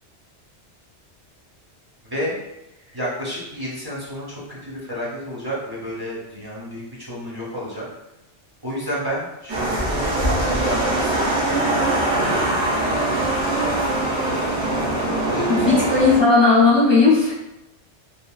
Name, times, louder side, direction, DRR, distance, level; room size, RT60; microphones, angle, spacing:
voice 1, 2.0-2.4 2.9-7.9 8.6-10.1 10.4-11.4 15.2-16.0, equal, 25° right, -7 dB, 0.6 m, -30 dB
sound 1, 9.5-16.2, right 1 dB, 90° right, 1.3 m, -22 dB
voice 2, 15.5-17.3, left 3 dB, 35° left, -6 dB, 0.4 m, -16 dB
3.5 x 2.4 x 2.3 m, 0.93 s
omnidirectional pair, 1.2 m